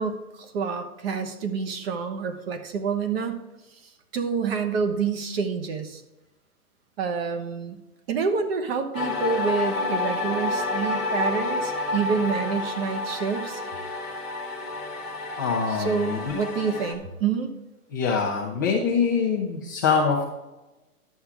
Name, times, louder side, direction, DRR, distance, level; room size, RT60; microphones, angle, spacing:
voice 1, 0.0-3.4 4.1-6.0 7.0-7.8 8.1-13.6 15.7-17.5, right 5 dB, 40° right, 7 dB, 1.1 m, -28 dB
sound 1, 8.9-16.9, left 2 dB, ahead, 1.0 m, -29 dB
voice 2, 15.4-16.2 17.9-20.2, left 5 dB, 15° left, -4 dB, 0.4 m, -24 dB
11.0 x 7.1 x 3.5 m, 1.0 s
hypercardioid pair, 155°, 45 cm